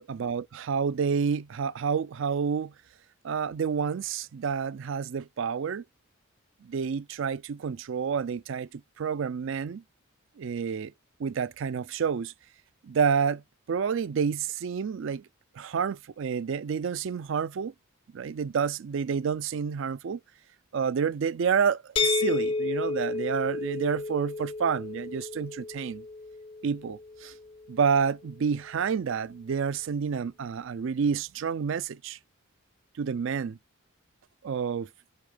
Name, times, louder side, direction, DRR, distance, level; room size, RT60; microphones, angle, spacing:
voice 1, 0.0-2.7 3.2-5.8 6.6-9.8 10.4-10.9 11.2-12.3 12.8-13.4 13.7-15.3 15.6-17.7 18.1-20.2 20.7-26.0 26.6-27.3 27.7-32.2 33.0-33.6 34.4-34.9, right 6 dB, 65° right, 0.4 m, -29 dB
sound 1, 22.0-27.7, left 3 dB, 25° left, 0.4 m, -32 dB
5.5 x 5.0 x 3.4 m
head